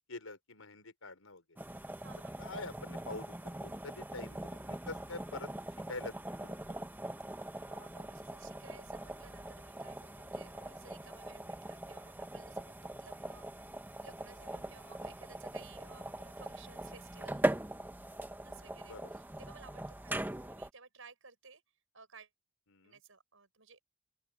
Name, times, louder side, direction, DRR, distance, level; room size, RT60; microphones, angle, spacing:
voice 1, 0.1-1.6 2.4-5.5 5.9-6.1 6.4-6.8 14.4-14.7 18.8-19.1 22.7-23.0, left 3 dB, 85° left, 4.9 m, -46 dB
sound 1, 1.6-20.7, right 1 dB, 10° right, 0.9 m, -41 dB
voice 2, 2.0-2.4 7.7-17.5 18.4-21.6 21.9-22.3 22.8-23.8, right 5 dB, 70° right, 6.9 m, -57 dB
open air
head